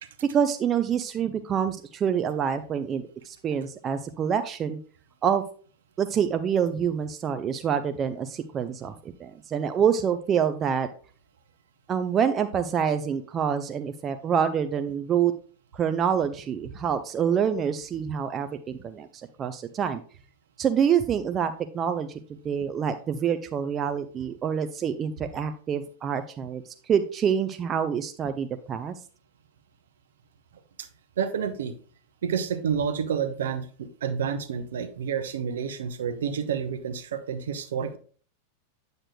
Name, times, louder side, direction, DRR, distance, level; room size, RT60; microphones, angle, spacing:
voice 1, 0.3-4.8 5.2-5.4 6.0-10.9 11.9-15.3 15.7-19.1 19.4-20.0 20.6-26.6 26.9-29.0, right 8 dB, 25° right, 8 dB, 0.4 m, -26 dB
voice 2, 31.2-31.7 32.2-38.0, right 7 dB, 60° right, 10 dB, 0.7 m, -29 dB
8.7 x 6.5 x 2.3 m, 0.42 s
figure-of-eight pair, 90°, 0 cm